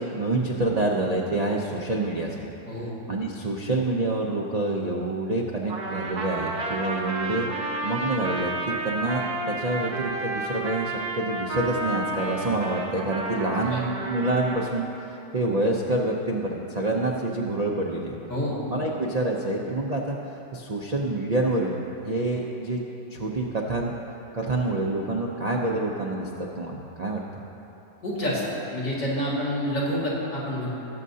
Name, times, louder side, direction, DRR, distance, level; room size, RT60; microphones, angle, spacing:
voice 1, 0.0-2.3 3.1-7.5 7.8-18.2 18.7-20.2 20.5-21.8 22.0-22.8 23.1-23.9 24.3-26.3 26.6-27.2, right 2 dB, 80° right, -2 dB, 0.3 m, -27 dB
Trumpet, 5.7-14.7, right 2 dB, 45° right, 0.8 m, -31 dB
voice 2, 28.0-28.4 28.7-30.7, equal, 85° left, -7 dB, 2.7 m, -28 dB
18.5 x 7.5 x 2.7 m, 3.0 s
omnidirectional pair, 1.8 m